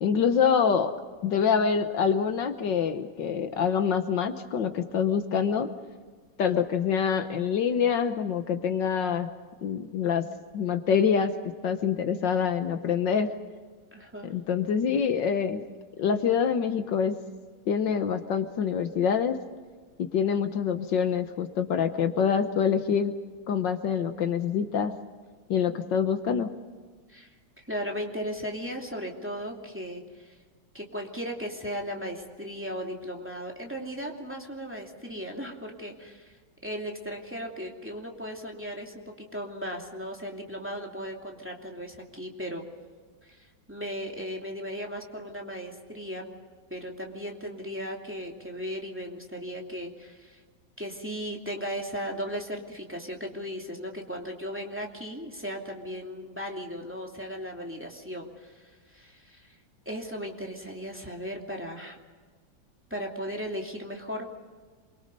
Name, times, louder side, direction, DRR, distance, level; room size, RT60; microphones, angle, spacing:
voice 1, 0.0-0.9 1.2-5.7 6.4-9.3 9.6-10.3 10.5-13.3 14.2-15.6 16.0-17.2 17.7-19.4 20.0-23.1 23.5-24.9 25.5-26.5, left 7 dB, 70° left, 8 dB, 1.7 m, -25 dB
voice 2, 13.9-14.3 27.1-27.3 27.7-30.3 30.7-36.4 36.6-42.6 43.2-46.3 46.7-50.4 50.8-59.5 59.9-62.0 62.9-64.3, equal, 5° right, 0 dB, 2.6 m, -36 dB
28.5 x 23.0 x 5.4 m, 1.5 s
omnidirectional pair, 2.1 m